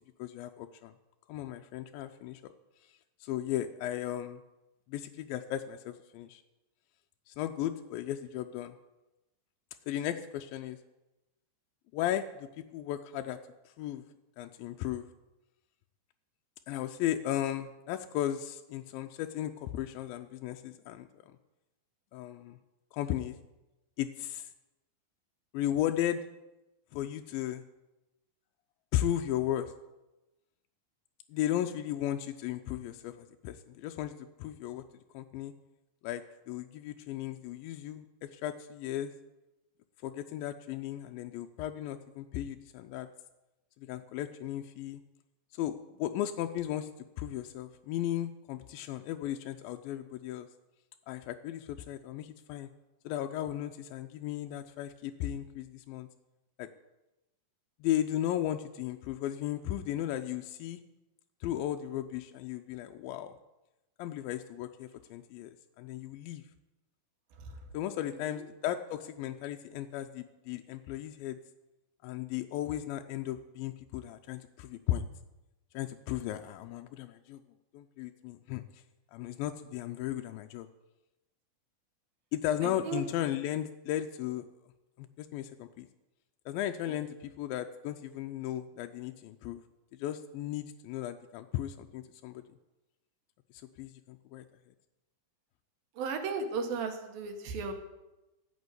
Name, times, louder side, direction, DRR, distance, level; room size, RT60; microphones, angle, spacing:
voice 1, 0.2-0.9 1.3-2.5 3.2-4.4 4.9-6.4 7.3-8.7 9.9-10.8 11.9-13.4 13.7-14.0 14.4-15.0 16.7-21.1 22.1-22.6 22.9-23.4 24.0-24.5 25.5-26.2 26.9-27.6 28.9-29.7 31.3-34.1 34.4-34.8 35.1-35.5 36.0-39.1 40.0-43.1 43.8-45.0 45.5-46.9 47.2-50.5 51.1-52.7 53.1-56.1 56.6-56.7 57.8-60.8 61.4-63.4 64.0-66.4 67.7-71.4 72.0-75.1 75.7-77.4 77.7-78.8 79.1-80.7 82.3-84.5 85.0-85.9 86.5-89.6 90.0-92.4 93.5-94.4, left 12 dB, 85° left, 5 dB, 2.4 m, -35 dB
voice 2, 82.6-83.0 86.9-87.0 96.0-97.7, right 5 dB, 85° right, 5 dB, 3.1 m, -35 dB
14.5 x 6.2 x 8.1 m, 1.0 s
omnidirectional pair, 4.0 m